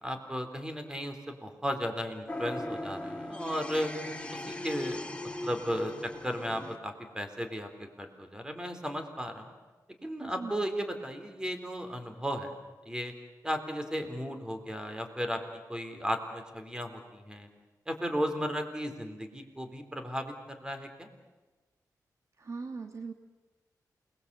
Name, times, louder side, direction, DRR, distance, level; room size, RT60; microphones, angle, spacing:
voice 1, 0.0-3.9 4.3-9.5 10.0-12.5 12.9-13.1 13.4-15.4 15.7-17.5 17.9-21.1, equal, 10° right, 6 dB, 3.7 m, -35 dB
sound 1, 2.3-6.8, left 1 dB, 15° left, 2.4 m, -39 dB
voice 2, 10.2-10.5 22.4-23.1, right 4 dB, 50° right, 6 dB, 1.5 m, -39 dB
28.5 x 21.0 x 8.3 m, 1.2 s
wide cardioid pair, 90°, 7 cm